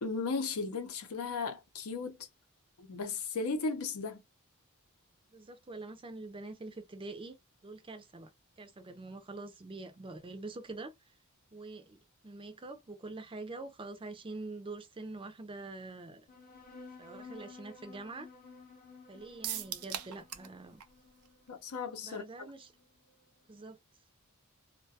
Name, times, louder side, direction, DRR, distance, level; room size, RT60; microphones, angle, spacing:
voice 1, 0.0-2.2 2.8-4.2 21.5-22.3, left 4 dB, 75° left, 0.6 m, -35 dB
voice 2, 5.3-7.4 7.6-8.3 8.6-10.9 11.5-12.0 12.2-16.3 17.0-18.3 19.1-20.8 22.0-22.7 23.5-23.8, right 2 dB, 25° right, 0.4 m, -45 dB
sound 1, 16.3-23.2, left 3 dB, 40° left, 0.7 m, -54 dB
sound 2, 19.4-20.5 20.8-20.9 21.3-21.4, right 10 dB, 85° right, 0.5 m, -38 dB
2.3 x 2.2 x 2.7 m
head